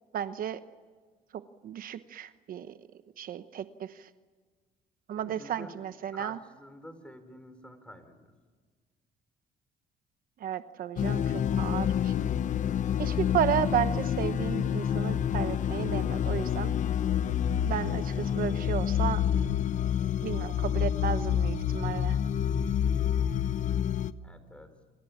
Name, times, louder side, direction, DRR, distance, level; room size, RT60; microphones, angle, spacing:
voice 1, 0.1-0.6 1.6-2.7 3.2-3.9 5.1-6.4 10.4-12.3 13.0-16.7 17.6-19.2 20.2-22.2, right 10 dB, 60° right, 11 dB, 1.0 m, -33 dB
voice 2, 5.2-5.7 6.1-8.3 24.2-24.7, left 1 dB, 5° left, 9 dB, 4.4 m, -48 dB
sound 1, 11.0-24.1, left 9 dB, 45° left, 0.9 m, -28 dB
27.5 x 27.0 x 7.3 m, 1.5 s
cardioid pair, 110°, 17 cm